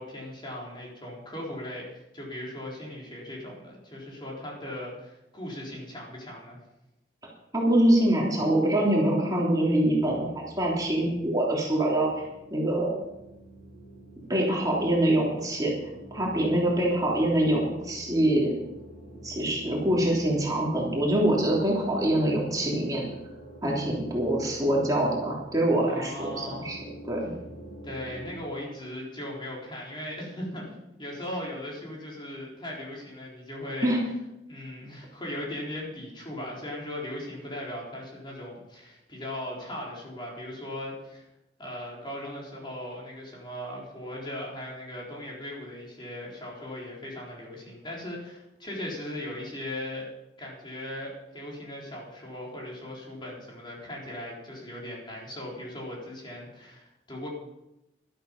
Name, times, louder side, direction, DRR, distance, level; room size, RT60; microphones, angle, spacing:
voice 1, 0.0-6.6 25.8-26.8 27.8-33.9 34.5-41.2 41.6-50.1 50.4-57.3, left 1 dB, 25° left, -3 dB, 4.0 m, -38 dB
voice 2, 7.5-12.2 12.5-13.0 14.3-15.7 16.1-18.5 19.2-23.0 23.6-26.8 27.0-27.3 33.8-34.0, right 1 dB, 20° right, -3 dB, 3.2 m, -24 dB
sound 1, 9.6-28.3, right 1 dB, 40° left, 6.9 m, -47 dB
12.5 x 12.5 x 5.4 m, 0.89 s
head